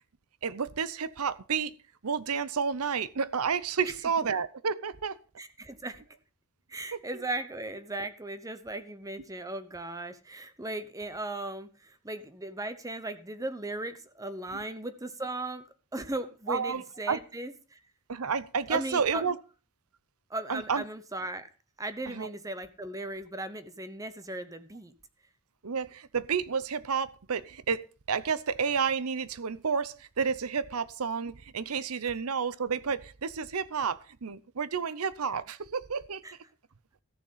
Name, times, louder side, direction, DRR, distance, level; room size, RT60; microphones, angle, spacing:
voice 1, 0.4-1.7 2.0-5.2 6.9-7.0 16.5-16.8 17.1-17.2 18.1-19.4 20.5-20.8 22.1-22.3 25.6-36.2, right 6 dB, 75° right, 0.7 m, -30 dB
voice 2, 5.4-6.0 6.7-15.6 15.9-17.8 18.7-19.2 20.3-21.5 21.8-24.9 36.2-36.4, right 2 dB, 15° right, 0.9 m, -37 dB
14.5 x 7.0 x 5.6 m
head